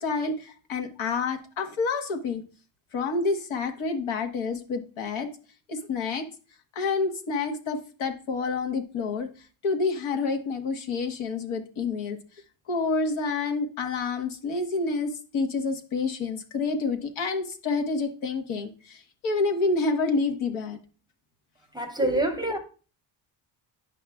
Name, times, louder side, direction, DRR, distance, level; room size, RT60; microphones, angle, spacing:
voice 1, 0.0-2.4 2.9-5.3 5.7-6.3 6.7-9.3 9.6-12.2 12.7-20.8 22.0-22.2, left 4 dB, 85° left, 1.4 m, -28 dB
voice 2, 21.7-22.6, right 2 dB, 10° right, 0.6 m, -26 dB
9.9 x 5.5 x 2.4 m
cardioid pair, 160°, 47 cm